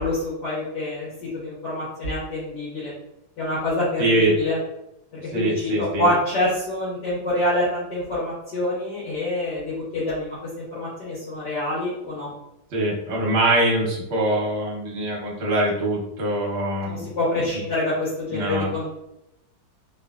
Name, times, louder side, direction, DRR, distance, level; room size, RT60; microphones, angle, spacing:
voice 1, 0.0-2.9 3.4-4.6 5.1-12.3 16.8-18.9, left 1 dB, 65° left, -8 dB, 1.5 m, -26 dB
voice 2, 4.0-4.3 5.3-6.1 12.7-17.0 17.3-17.5 18.3-18.7, right 1 dB, 50° right, -3 dB, 0.9 m, -23 dB
3.6 x 2.4 x 2.3 m, 0.86 s
omnidirectional pair, 2.1 m